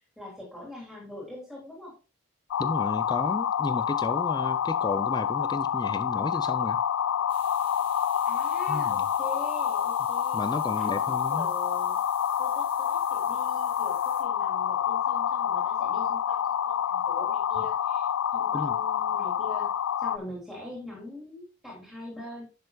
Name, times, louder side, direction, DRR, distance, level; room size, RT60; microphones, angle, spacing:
voice 1, 0.2-1.9 8.3-10.4 10.7-10.9 11.3-12.0 12.4-22.4, left 1 dB, ahead, 3.5 m, -43 dB
sound 1, 2.5-20.2, left 9 dB, 70° left, 0.3 m, -27 dB
voice 2, 2.6-6.8 8.7-9.1 10.3-11.5 18.5-18.7, left 2 dB, 20° left, 0.5 m, -33 dB
sound 2, 7.3-14.2, right 2 dB, 25° right, 4.6 m, -50 dB
10.5 x 6.6 x 2.4 m
head